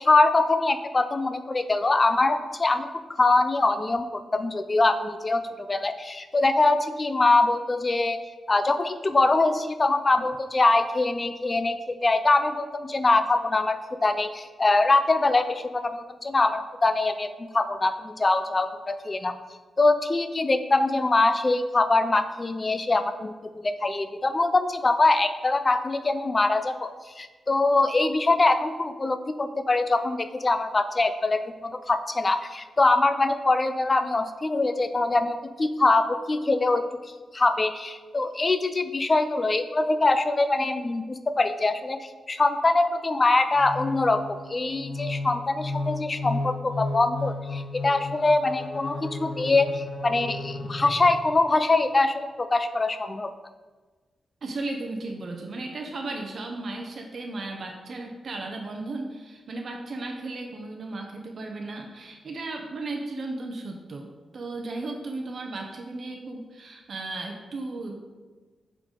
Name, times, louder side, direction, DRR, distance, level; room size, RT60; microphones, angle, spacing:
voice 1, 0.0-8.2 8.5-19.4 19.8-26.9 27.2-36.8 37.3-53.3, left 2 dB, 30° left, 10 dB, 0.3 m, -23 dB
sound 1, 43.6-51.5, left 2 dB, 65° left, 0.8 m, -34 dB
voice 2, 54.4-68.0, right 2 dB, 55° right, 3 dB, 0.7 m, -35 dB
7.8 x 3.8 x 3.7 m, 1.3 s
wide cardioid pair, 115°, 0 cm